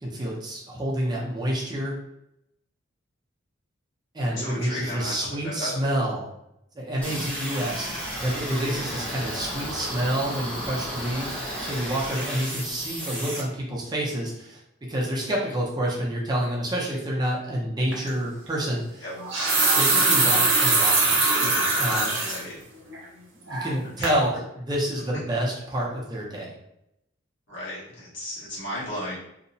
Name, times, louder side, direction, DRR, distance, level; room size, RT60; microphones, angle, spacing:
voice 1, 0.0-2.0 4.1-6.3 6.7-14.6 14.9-19.0 19.7-21.2 21.7-22.2 23.5-26.5, right 1 dB, 20° right, -4 dB, 0.5 m, -28 dB
voice 2, 4.3-5.8 7.0-7.3 19.0-19.1 21.4-21.7 22.2-22.6 24.0-24.1 27.5-29.2, left 1 dB, 80° left, -8 dB, 1.3 m, -35 dB
sound 1, 7.0-13.4, equal, 10° left, 0.8 m, -33 dB
sound 2, 17.9-18.1 19.1-22.4 22.9-23.0 23.5-23.8 24.0-24.2, right 3 dB, 65° right, 0.7 m, -22 dB
2.8 x 2.0 x 2.6 m, 0.81 s
head